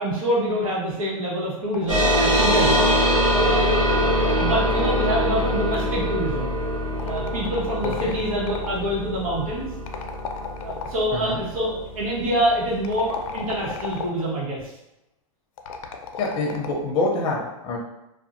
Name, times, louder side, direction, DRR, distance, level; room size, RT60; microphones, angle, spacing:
voice 1, 0.0-2.9 3.4-4.0 4.3-6.5 7.0-9.7 10.6-14.6, equal, 85° right, -6 dB, 1.2 m, -26 dB
sound 1, 1.7-3.4 4.2-6.0 7.0-8.8 9.9-11.2 12.7-14.3 15.6-16.9, left 6 dB, 75° left, 0.4 m, -35 dB
sound 2, 1.9-12.8, equal, 60° right, 1.4 m, -23 dB
voice 2, 7.8-8.2 11.1-11.4 16.2-17.8, left 2 dB, 25° left, -1 dB, 0.5 m, -26 dB
2.5 x 2.3 x 2.6 m, 0.90 s
hypercardioid pair, 130°, 17 cm